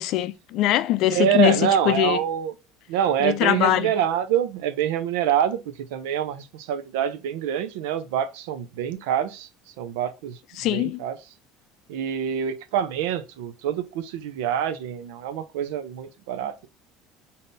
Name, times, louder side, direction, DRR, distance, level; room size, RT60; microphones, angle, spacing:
voice 1, 0.0-2.2 3.2-3.9 10.6-11.0, left 14 dB, 60° left, 0.4 m, -22 dB
voice 2, 1.1-2.5 2.9-5.6 5.9-9.5 9.8-10.4 10.7-11.1 11.9-16.7, right 9 dB, 85° right, 0.6 m, -26 dB
5.3 x 2.7 x 2.5 m
supercardioid pair, 120°, 0 cm